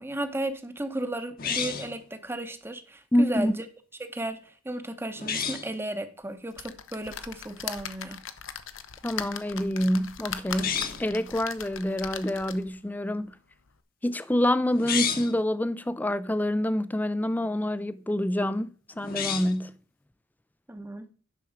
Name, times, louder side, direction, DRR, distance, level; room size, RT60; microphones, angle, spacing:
voice 1, 0.0-3.7 4.0-8.2 20.7-21.1, right 1 dB, 10° right, 0.8 m, -34 dB
sound 1, 1.4-2.0 5.2-5.7 10.5-11.1 14.7-15.4 19.0-19.6, left 7 dB, 45° left, 1.1 m, -31 dB
voice 2, 3.1-3.5 9.0-13.3 14.0-18.7 19.0-19.8, left 1 dB, 10° left, 0.4 m, -27 dB
sound 2, 6.5-12.8 13.3-13.4 13.7-13.8, left 8 dB, 70° left, 0.7 m, -39 dB
10.0 x 6.1 x 5.0 m
head